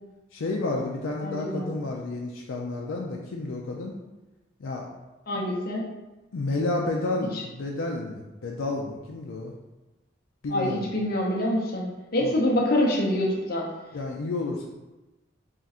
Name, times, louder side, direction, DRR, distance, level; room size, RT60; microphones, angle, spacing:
voice 1, 0.3-4.0 4.6-4.9 6.3-9.5 10.4-10.9 12.2-12.3 13.9-14.7, left 2 dB, 85° left, -1 dB, 0.5 m, -31 dB
voice 2, 1.2-1.7 5.3-5.9 7.2-7.4 10.5-11.9 12.1-13.7, left 1 dB, 50° left, -2 dB, 0.7 m, -26 dB
3.7 x 2.5 x 4.1 m, 1.1 s
head